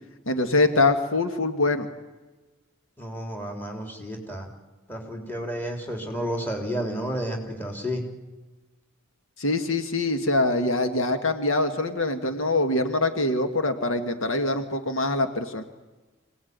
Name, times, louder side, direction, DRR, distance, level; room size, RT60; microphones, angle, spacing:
voice 1, 0.3-1.9 9.4-15.6, left 2 dB, 75° left, 8 dB, 1.9 m, -24 dB
voice 2, 3.0-4.5 4.9-8.0, equal, 10° left, 3 dB, 3.8 m, -31 dB
26.0 x 18.5 x 9.5 m, 1.2 s
head